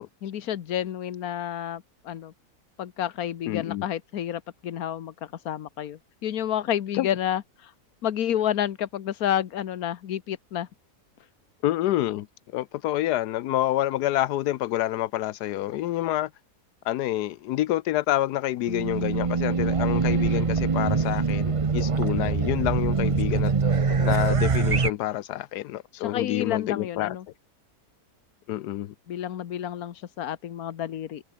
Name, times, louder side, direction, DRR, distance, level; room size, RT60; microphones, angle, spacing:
voice 1, 0.2-2.3 2.8-7.7 8.0-10.7 23.9-24.1 26.0-27.2 29.1-31.2, left 10 dB, 70° left, 1.5 m, -30 dB
voice 2, 3.5-3.8 6.9-7.1 11.6-12.3 12.5-16.3 16.8-23.5 24.0-27.2 28.5-28.9, left 14 dB, 90° left, 1.2 m, -27 dB
Race car auto racing / Alarm, 18.7-24.9, right 5 dB, 30° right, 0.6 m, -24 dB
omnidirectional pair, 1.7 m